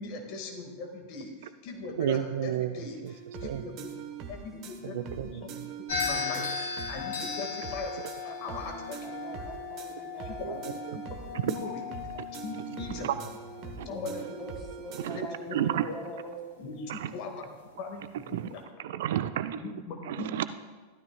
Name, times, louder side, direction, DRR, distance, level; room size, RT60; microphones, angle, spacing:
voice 1, 0.0-5.5 5.9-9.2 10.2-10.5 11.1-11.8 12.4-13.1 13.9-14.4 15.1-16.0 16.6-17.5 17.8-18.0 18.5-18.6 19.5-20.4, left 3 dB, 40° left, 3 dB, 1.9 m, -40 dB
voice 2, 2.0-3.1 3.4-3.6 4.8-5.6 6.4-6.6 10.4-10.6 11.4-11.5 12.2-12.3 12.9-13.2 13.8-13.9 15.0-15.9 16.9-17.1 18.1-18.5 18.8-19.6 20.0-20.5, right 11 dB, 55° right, 12 dB, 0.4 m, -32 dB
sound 1, 3.1-15.3, right 5 dB, 40° right, 1.2 m, -43 dB
sound 2, 5.9-14.2, left 5 dB, 60° left, 2.3 m, -37 dB
voice 3, 8.3-10.6 13.8-16.4, right 1 dB, 15° left, -1 dB, 2.9 m, -43 dB
15.0 x 12.5 x 2.3 m, 1.4 s
figure-of-eight pair, 90°, 0 cm